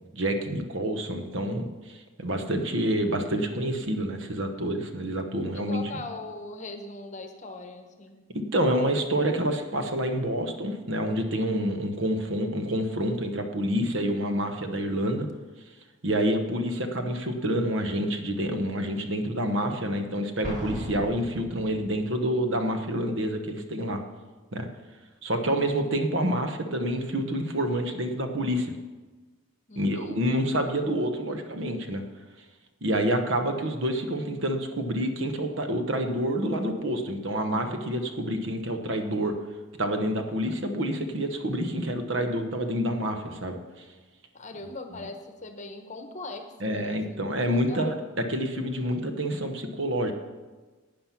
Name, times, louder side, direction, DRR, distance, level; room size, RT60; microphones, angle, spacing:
voice 1, 0.1-5.8 8.3-15.3 16.0-24.0 24.5-24.7 25.2-28.7 29.8-32.0 32.8-39.4 39.8-43.8 46.6-50.1, equal, 60° right, 6 dB, 1.1 m, -28 dB
voice 2, 5.5-8.3 29.7-30.2 44.3-47.2 47.7-47.9, left 2 dB, 35° left, 6 dB, 1.0 m, -40 dB
Explosion, 20.4-22.0, equal, 35° right, 2.2 m, -37 dB
11.5 x 8.7 x 5.8 m, 1.3 s
head